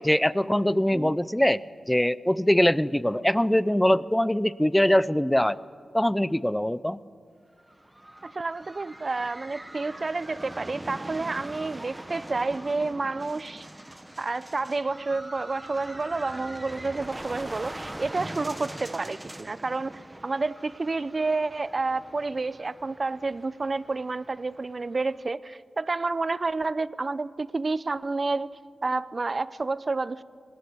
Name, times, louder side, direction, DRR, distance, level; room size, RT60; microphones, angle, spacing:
voice 1, 0.0-1.6 1.9-5.6 5.9-7.0, left 1 dB, 10° left, 18 dB, 0.6 m, -22 dB
sound 1, 7.6-25.2, right 1 dB, 15° right, 1.1 m, -42 dB
voice 2, 8.2-13.7 14.2-28.5 28.8-30.2, right 3 dB, 45° right, 17 dB, 0.7 m, -30 dB
26.0 x 20.0 x 8.6 m, 2.1 s
cardioid pair, 50°, 0 cm